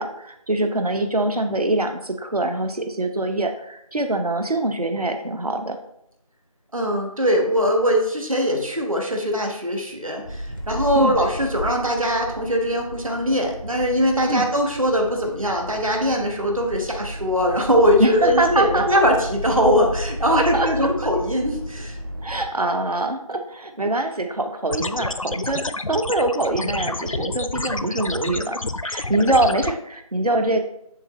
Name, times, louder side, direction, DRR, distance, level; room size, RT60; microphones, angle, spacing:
voice 1, 0.0-5.8 10.9-11.2 14.3-14.5 18.0-18.9 20.3-20.9 22.2-25.6 25.9-30.6, right 2 dB, 85° right, 6 dB, 0.7 m, -24 dB
voice 2, 6.7-22.0, equal, 65° right, 2 dB, 1.3 m, -21 dB
sound 1, 10.2-22.5, equal, 35° right, 0.8 m, -33 dB
sound 2, 24.7-29.7, left 2 dB, 65° left, 0.4 m, -29 dB
9.3 x 3.9 x 3.1 m, 0.76 s
figure-of-eight pair, 180°, 19 cm